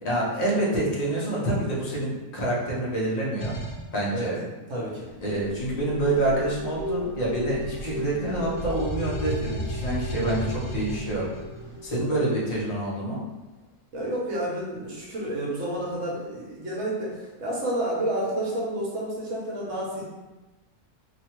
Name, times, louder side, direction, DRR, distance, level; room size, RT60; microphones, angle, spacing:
voice 1, 0.0-3.6 3.9-4.4 5.2-11.3 11.8-13.2, right 1 dB, 40° left, -5 dB, 0.6 m, -27 dB
sound 1, 3.4-3.9 5.2-7.1 7.5-11.6, right 1 dB, 75° left, 1.1 m, -34 dB
voice 2, 4.7-5.1 11.6-11.8 13.9-20.0, right 1 dB, 70° right, -5 dB, 1.1 m, -30 dB
sound 2, 5.5-13.0, equal, 45° right, 0.7 m, -37 dB
2.8 x 2.2 x 2.9 m, 1.1 s
omnidirectional pair, 1.4 m